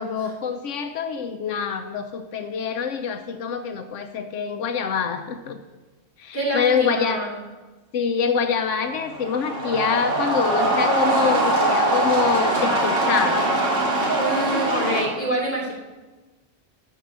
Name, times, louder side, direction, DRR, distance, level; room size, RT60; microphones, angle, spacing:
voice 1, 0.0-5.6 6.2-7.2 7.9-13.4 14.8-15.1, left 6 dB, 80° left, 7 dB, 1.0 m, -25 dB
voice 2, 6.3-7.4 14.1-15.7, right 1 dB, 10° left, -2 dB, 2.7 m, -26 dB
sound 1, 8.9-15.0, right 1 dB, 90° right, 2.4 m, -22 dB
12.5 x 4.8 x 7.3 m, 1.2 s
omnidirectional pair, 1.2 m